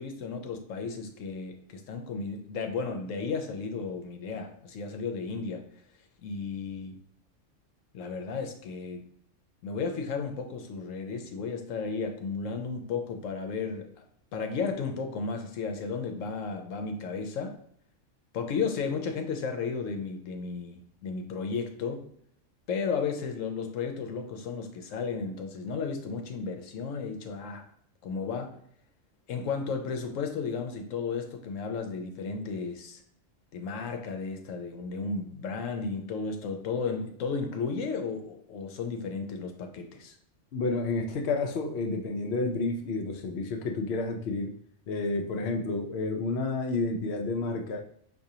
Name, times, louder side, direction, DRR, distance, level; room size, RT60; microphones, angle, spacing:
voice 1, 0.0-5.6 6.2-7.0 7.9-9.1 9.6-13.9 14.3-17.6 18.3-22.1 22.7-27.6 28.0-28.6 29.3-33.0 33.5-40.2, left 5 dB, 85° left, 5 dB, 1.0 m, -34 dB
voice 2, 40.5-44.5 44.9-47.8, left 3 dB, 65° left, 4 dB, 0.7 m, -30 dB
4.8 x 2.6 x 2.7 m, 0.64 s
omnidirectional pair, 1.3 m